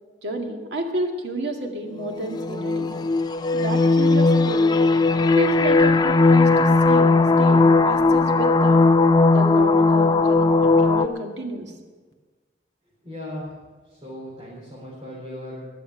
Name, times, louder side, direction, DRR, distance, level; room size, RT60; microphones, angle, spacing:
voice 1, 0.2-2.9 3.5-4.7 5.4-8.8 9.3-11.7, right 1 dB, 85° right, 2 dB, 2.1 m, -30 dB
sound 1, 2.1-11.1, left 3 dB, 25° left, 0.4 m, -17 dB
voice 2, 13.0-13.5 13.9-15.7, left 1 dB, 25° right, -7 dB, 4.1 m, -37 dB
21.5 x 7.2 x 6.9 m, 1.4 s
head